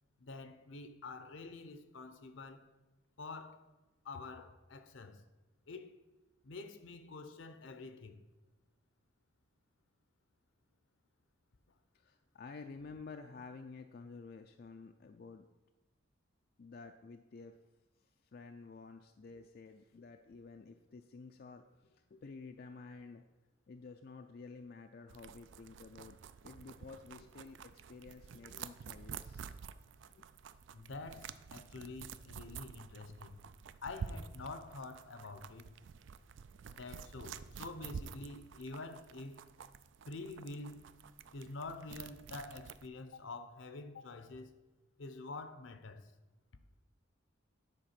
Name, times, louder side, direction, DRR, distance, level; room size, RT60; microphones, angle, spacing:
voice 1, 0.2-2.7 3.2-3.7 4.0-5.2 5.7-6.0 6.4-8.2 30.7-33.4 33.8-35.7 36.7-39.4 40.1-40.9 41.3-44.5 45.0-46.1, left 3 dB, 70° left, 0.7 m, -47 dB
voice 2, 11.9-15.5 16.6-17.5 18.3-23.2 23.7-26.2 26.4-29.5 30.1-30.3, left 4 dB, 50° left, 0.4 m, -51 dB
sound 1, 25.1-42.9, right 6 dB, 65° right, 0.4 m, -49 dB
9.8 x 4.5 x 5.9 m
head